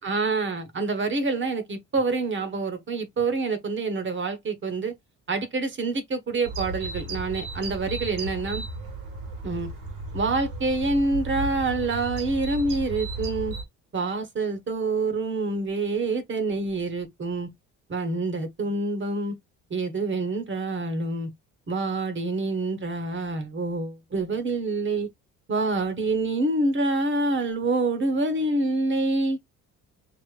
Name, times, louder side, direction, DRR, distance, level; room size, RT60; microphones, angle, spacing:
voice 1, 0.0-4.9 5.3-8.6 9.4-9.7 10.1-13.5 13.9-17.5 17.9-19.4 19.7-21.3 21.7-25.1 25.5-29.4, right 3 dB, 35° right, 1.3 m, -26 dB
sound 1, 6.4-13.6, right 2 dB, 80° right, 1.8 m, -34 dB
5.0 x 2.8 x 2.4 m
cardioid pair, 85°, 32 cm